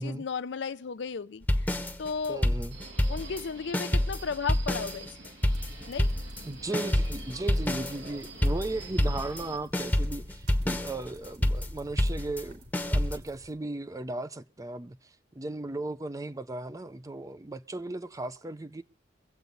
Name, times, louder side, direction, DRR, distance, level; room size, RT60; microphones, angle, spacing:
voice 1, 0.0-2.5 3.1-5.1 5.9-6.1, left 5 dB, 70° left, 0.5 m, -35 dB
sound 1, 1.4-3.5 3.7-9.5 9.7-13.2, left 1 dB, 10° left, 0.9 m, -28 dB
voice 2, 2.3-2.8 6.4-12.6 12.9-18.8, right 2 dB, 20° right, 0.5 m, -36 dB
Subway metro underground, 2.7-9.6, right 4 dB, 90° right, 2.7 m, -47 dB
sound 2, 5.5-13.5, equal, 55° right, 3.3 m, -52 dB
24.0 x 8.1 x 3.9 m
head